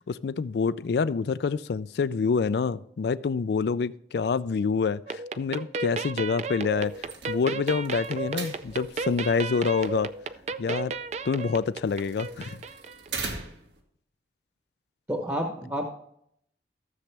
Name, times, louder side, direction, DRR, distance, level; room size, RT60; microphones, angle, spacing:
voice 1, 0.1-6.9 7.3-10.1 10.6-10.9 11.2-12.6, left 5 dB, 70° left, 17 dB, 0.4 m, -27 dB
sound 1, 5.1-13.2, right 4 dB, 40° right, 0.4 m, -34 dB
sound 2, 6.8-13.8, right 4 dB, 90° right, 1.9 m, -42 dB
voice 2, 15.1-15.9, equal, 15° right, 3 dB, 0.9 m, -29 dB
13.5 x 7.2 x 3.3 m, 0.70 s
head